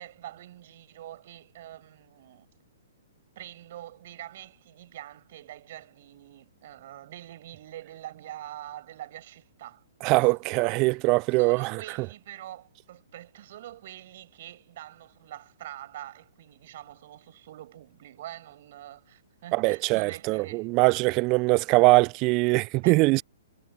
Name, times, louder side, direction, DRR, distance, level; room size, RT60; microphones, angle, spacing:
voice 1, 0.0-2.5 3.4-10.9 11.4-20.7 22.8-23.0, right 13 dB, 55° right, 7.8 m, -45 dB
voice 2, 10.0-11.8 19.5-23.2, right 26 dB, 35° right, 0.3 m, -22 dB
hypercardioid pair, 125°, 0 cm